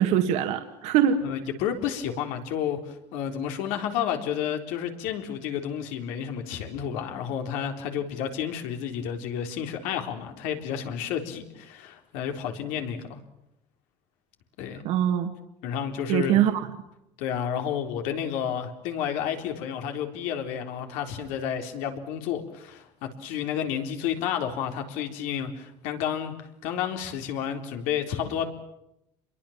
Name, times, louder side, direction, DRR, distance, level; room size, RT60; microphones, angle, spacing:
voice 1, 0.0-1.2 14.8-15.3 16.1-16.5, right 10 dB, 65° right, 5 dB, 2.0 m, -22 dB
voice 2, 1.2-13.2 14.6-14.8 15.6-16.4 17.2-22.9 23.2-26.3 26.6-28.5, left 9 dB, 80° left, 5 dB, 4.0 m, -31 dB
27.5 x 22.5 x 7.4 m, 0.84 s
cardioid pair, 150°, 12 cm